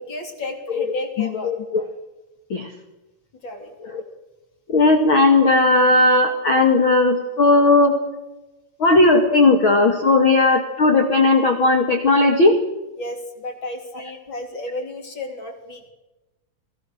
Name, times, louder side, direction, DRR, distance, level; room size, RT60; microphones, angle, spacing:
voice 1, 0.1-1.5 3.4-3.8 13.0-15.9, left 2 dB, 30° left, 4 dB, 2.9 m, -32 dB
voice 2, 1.2-1.8 2.5-2.7 3.9-4.0 4.7-8.0 8.8-12.6, left 2 dB, 85° left, 5 dB, 1.1 m, -16 dB
29.5 x 20.5 x 6.6 m, 1.1 s
omnidirectional pair, 5.7 m